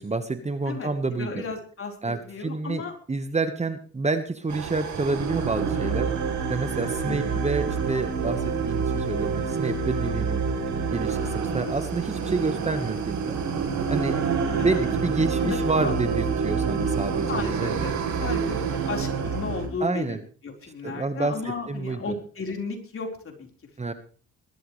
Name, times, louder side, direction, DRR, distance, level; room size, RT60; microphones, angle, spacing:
voice 1, 0.0-1.4 2.0-10.4 10.9-13.4 13.9-14.2 14.6-17.7 19.8-20.2 20.8-22.1 23.8-23.9, right 3 dB, 20° right, 9 dB, 1.4 m, -29 dB
voice 2, 1.2-2.9 7.0-7.5 14.6-14.8 15.4-15.6 15.8-15.9 17.3-17.9 18.2-20.2 20.4-23.5, left 4 dB, 45° left, 2 dB, 4.5 m, -34 dB
sound 1, 4.5-19.7, right 5 dB, 70° right, 3.6 m, -27 dB
21.5 x 12.5 x 3.3 m, 0.40 s
cardioid pair, 90°, 30 cm